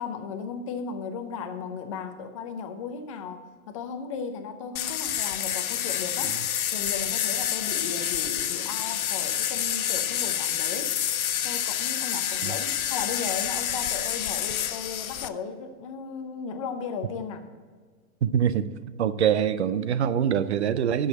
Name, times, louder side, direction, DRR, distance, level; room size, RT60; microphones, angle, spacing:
voice 1, 0.0-6.4 6.7-10.9 11.4-17.4, left 5 dB, 25° left, 7 dB, 0.6 m, -36 dB
sound 1, 4.8-15.3, left 10 dB, 75° left, 0.7 m, -28 dB
voice 2, 18.2-18.7 19.0-21.1, right 8 dB, 50° right, 14 dB, 0.6 m, -24 dB
7.8 x 6.4 x 8.1 m, 1.5 s
hypercardioid pair, 150°, 42 cm